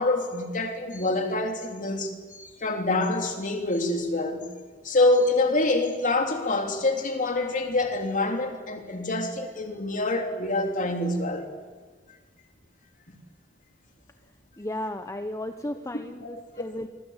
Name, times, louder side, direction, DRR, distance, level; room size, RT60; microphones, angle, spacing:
voice 1, 0.0-4.5 4.8-11.5 13.1-13.2 16.2-16.3, left 2 dB, 40° left, 4 dB, 3.4 m, -26 dB
voice 2, 14.6-16.9, left 1 dB, 15° left, 7 dB, 1.0 m, -34 dB
26.0 x 23.5 x 8.2 m, 1.5 s
head